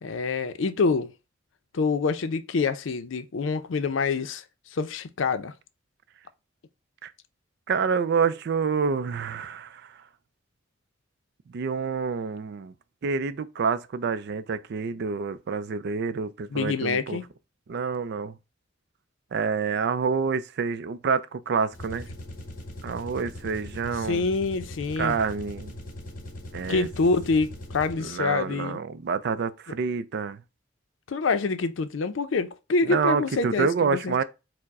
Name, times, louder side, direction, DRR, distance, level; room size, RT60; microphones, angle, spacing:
voice 1, 0.0-1.1 1.7-4.4 4.7-5.5 16.5-17.2 24.1-25.2 26.7-28.8 31.1-34.2, left 4 dB, 90° left, 0.5 m, -26 dB
voice 2, 7.7-9.9 11.5-12.7 13.0-17.2 17.7-18.4 19.3-22.1 22.8-24.2 25.0-25.7 26.5-26.9 28.0-30.4 32.8-34.2, right 5 dB, 60° right, 0.4 m, -27 dB
sound 1, 21.7-28.2, left 1 dB, 45° left, 0.9 m, -40 dB
4.6 x 2.1 x 4.6 m
head